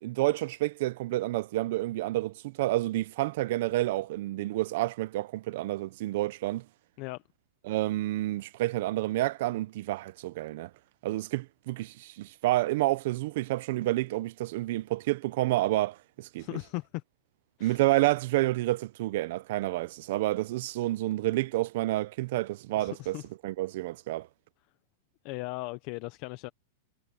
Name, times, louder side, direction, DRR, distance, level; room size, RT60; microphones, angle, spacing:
voice 1, 0.0-6.6 7.7-10.7 11.0-16.5 17.6-23.2 23.4-24.3, right 17 dB, 50° right, 0.5 m, -29 dB
voice 2, 16.4-17.0 17.6-17.8 22.8-23.2 25.2-26.5, left 23 dB, 35° left, 0.7 m, -37 dB
supercardioid pair, 170°, 0 cm